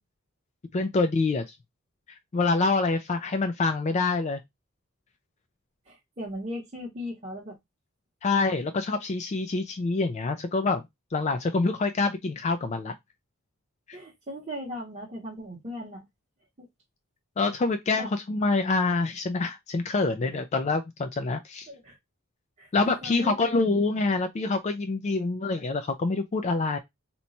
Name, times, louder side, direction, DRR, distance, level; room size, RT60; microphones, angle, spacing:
voice 1, 0.7-1.4 2.3-4.4 8.2-10.9 11.1-12.9 13.9-14.0 17.4-21.7 22.7-26.8, left 3 dB, 35° left, 0.3 m, -26 dB
voice 2, 5.9-7.6 13.9-16.1 16.6-16.7 17.9-18.1 20.3-20.4 21.7-22.0 22.6-22.7 23.0-23.8 24.4-24.5, equal, 30° right, 0.9 m, -38 dB
2.9 x 2.2 x 4.0 m
head